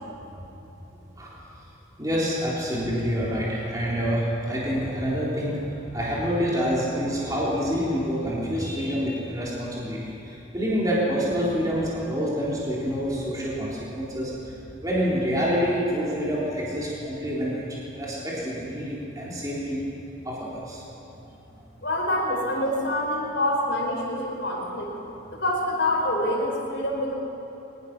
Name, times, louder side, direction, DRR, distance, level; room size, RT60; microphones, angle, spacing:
voice 1, 2.0-5.6 5.9-14.3 14.8-17.6 17.9-19.8 20.3-20.8, equal, 20° right, -6 dB, 3.6 m, -27 dB
voice 2, 21.8-24.9 25.4-27.1, left 1 dB, 65° left, -1 dB, 4.7 m, -26 dB
22.5 x 19.0 x 6.1 m, 3.0 s
head